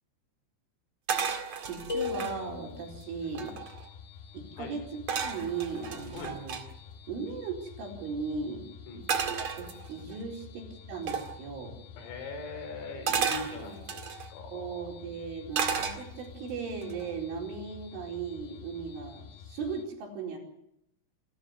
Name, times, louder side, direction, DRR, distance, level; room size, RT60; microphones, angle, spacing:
sound 1, 1.1-2.4 3.0-3.1 3.3-3.9 5.1-6.6 9.1-10.2 11.1-11.3 13.1-14.3 15.5-16.4 16.8-17.2, right 6 dB, 50° right, 2.0 m, -32 dB
voice 1, 1.6-3.6 4.3-6.6 7.1-8.7 9.3-11.8 14.5-20.4, right 5 dB, 70° right, 1 dB, 6.8 m, -37 dB
sound 2, 1.9-3.0, left 5 dB, 15° left, 3.9 m, -35 dB
sound 3, 2.0-19.9, left 7 dB, 60° left, 3.9 m, -49 dB
voice 2, 12.0-15.0, left 3 dB, 85° left, 8 dB, 6.9 m, -41 dB
28.0 x 13.5 x 9.6 m, 0.78 s
omnidirectional pair, 5.9 m